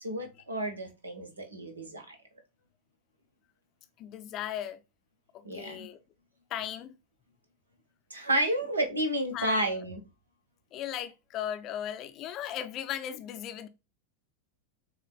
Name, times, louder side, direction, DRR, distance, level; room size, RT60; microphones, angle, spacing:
voice 1, 0.0-2.2 5.4-5.9 8.1-10.0, right 1 dB, 75° right, 1.2 m, -31 dB
voice 2, 4.0-4.8 5.5-6.0 6.5-7.0 9.3-9.8 10.7-13.7, left 10 dB, 35° left, 0.5 m, -37 dB
7.1 x 2.4 x 2.2 m
figure-of-eight pair, 90°, 0 cm